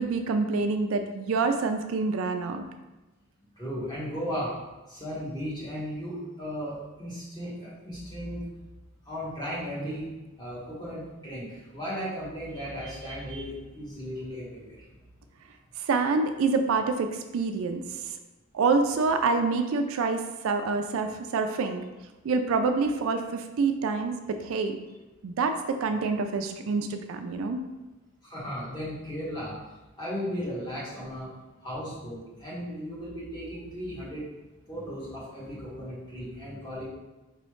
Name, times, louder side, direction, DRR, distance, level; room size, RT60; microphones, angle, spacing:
voice 1, 0.0-2.6 15.8-18.1 18.5-21.8 22.2-24.8 25.2-27.6, right 4 dB, 70° right, 7 dB, 0.3 m, -27 dB
voice 2, 3.6-4.6 4.9-8.5 9.0-10.1 10.4-14.8 28.2-29.6 30.0-31.3 31.6-34.2 34.7-36.9, equal, 20° left, -7 dB, 1.3 m, -36 dB
4.6 x 3.1 x 3.1 m, 1.1 s
head